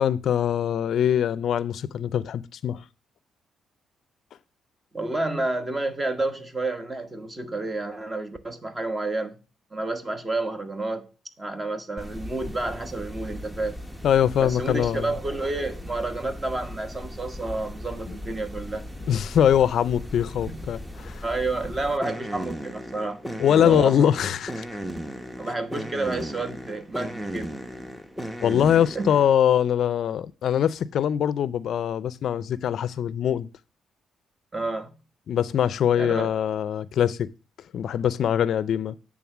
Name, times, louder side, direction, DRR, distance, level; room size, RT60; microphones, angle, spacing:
voice 1, 0.0-2.8 14.0-15.1 19.1-21.2 23.4-24.6 28.4-33.5 35.3-37.3 37.7-38.9, left 9 dB, 65° left, 0.4 m, -23 dB
voice 2, 4.9-9.4 9.7-11.1 11.4-13.8 14.4-18.9 20.5-20.6 21.2-23.2 23.6-24.1 25.4-27.6 28.9-29.1 34.5-34.9 35.9-36.3, right 2 dB, 25° right, 1.2 m, -30 dB
sound 1, 12.0-29.4, equal, 5° right, 0.8 m, -37 dB
8.6 x 3.6 x 5.9 m
cardioid pair, 90°, 0 cm